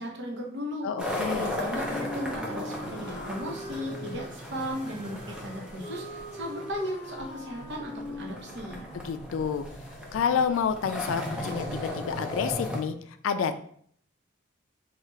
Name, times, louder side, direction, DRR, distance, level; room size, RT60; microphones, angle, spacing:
voice 1, 0.0-0.9 1.4-8.8, equal, 60° right, -1 dB, 0.9 m, -36 dB
voice 2, 0.8-1.5 9.0-9.6 10.1-13.0 13.2-13.7, left 6 dB, 85° left, 9 dB, 0.3 m, -29 dB
sound 1, 1.0-12.8, left 1 dB, 5° right, 0.5 m, -36 dB
Wind instrument woodwind instrument, 1.3-9.4, left 1 dB, 40° left, 0.8 m, -42 dB
4.5 x 2.4 x 3.1 m, 0.62 s
head